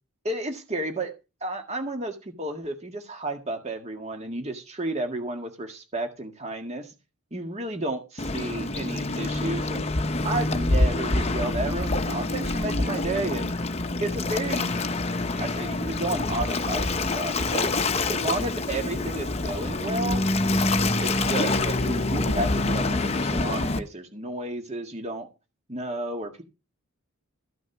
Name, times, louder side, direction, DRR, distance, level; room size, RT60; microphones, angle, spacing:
voice 1, 0.2-1.1 1.4-6.9 7.3-9.9 10.2-13.5 14.0-14.7 15.4-17.7 18.1-20.2 21.0-25.3 25.7-26.4, right 2 dB, 30° right, 5 dB, 1.8 m, -32 dB
Waves surf, 8.2-23.8, left 2 dB, 30° left, 0.8 m, -26 dB
14.5 x 6.3 x 5.9 m, 0.29 s
head